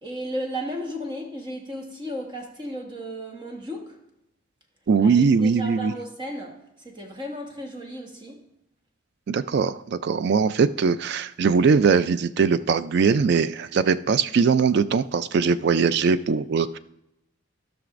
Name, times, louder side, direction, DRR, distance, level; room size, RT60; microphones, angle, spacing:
voice 1, 0.0-4.0 5.0-8.4, equal, 20° right, 2 dB, 1.2 m, -34 dB
voice 2, 4.9-5.9 9.3-16.8, right 5 dB, 50° right, 14 dB, 0.3 m, -21 dB
16.0 x 5.9 x 2.5 m, 0.84 s
head